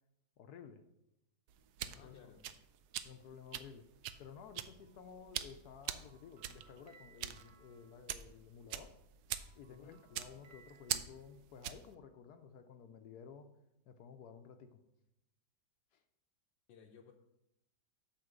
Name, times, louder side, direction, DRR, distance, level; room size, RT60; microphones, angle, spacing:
voice 1, 0.4-0.8 1.8-2.3 3.0-3.9 4.2-9.0 9.5-13.5 13.9-14.8 15.9-16.0, left 6 dB, 70° left, 8 dB, 1.1 m, -54 dB
sound 1, 1.5-11.9, right 11 dB, 70° right, 1.0 m, -44 dB
voice 2, 1.9-2.4 9.7-10.1 16.7-17.1, left 7 dB, 85° left, 1 dB, 1.4 m, -58 dB
sound 2, 4.8-8.8 9.2-11.6, right 5 dB, 55° right, 0.8 m, -67 dB
8.6 x 4.4 x 6.6 m, 0.85 s
omnidirectional pair, 1.9 m